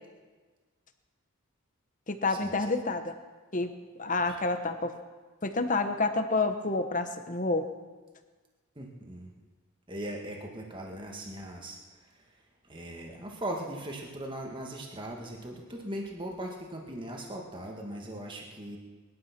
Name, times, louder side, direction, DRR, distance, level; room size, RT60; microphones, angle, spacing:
voice 1, 2.1-3.1 3.5-3.7 4.0-4.9 5.4-7.6, left 3 dB, 35° left, 8 dB, 1.1 m, -28 dB
voice 2, 8.7-9.3 9.9-12.2 12.7-18.8, right 1 dB, 20° right, 1 dB, 1.7 m, -39 dB
20.5 x 12.0 x 6.0 m, 1.4 s
head